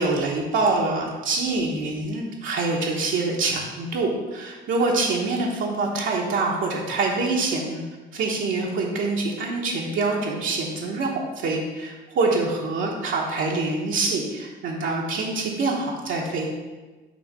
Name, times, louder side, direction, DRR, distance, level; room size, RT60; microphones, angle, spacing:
voice 1, 0.0-7.8 8.1-16.5, right 3 dB, 75° right, -3 dB, 1.1 m, -25 dB
6.5 x 3.2 x 5.2 m, 1.2 s
cardioid pair, 90°, 20 cm